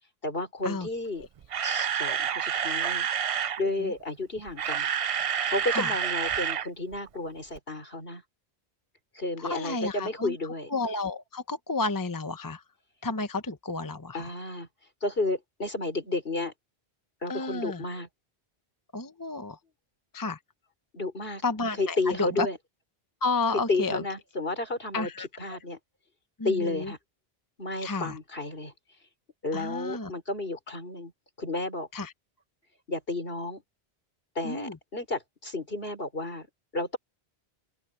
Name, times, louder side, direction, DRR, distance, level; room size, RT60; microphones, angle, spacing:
voice 1, 0.2-1.2 1.6-3.1 3.6-4.9 5.4-8.2 9.1-10.7 14.1-14.7 15.0-16.5 17.2-18.1 20.9-21.4 21.8-22.6 23.7-25.1 25.4-25.8 26.4-27.0 27.6-28.7 29.4-31.1 31.4-31.9 32.9-33.6 34.3-36.5 36.7-37.0, left 2 dB, 65° left, 4.9 m, -32 dB
Camera, 1.2-3.6 4.4-6.7 6.9-7.1 7.5-7.6, right 8 dB, 55° right, 0.4 m, -28 dB
voice 2, 3.6-3.9 5.7-5.9 9.4-10.4 10.7-12.6 13.0-14.3 17.3-17.8 18.9-19.6 20.1-20.4 21.4-22.5 23.2-24.0 24.9-25.6 26.4-26.9 27.8-28.2 29.5-30.1 31.9-32.1 34.4-34.8, left 3 dB, 20° left, 0.9 m, -31 dB
open air
omnidirectional pair, 1.1 m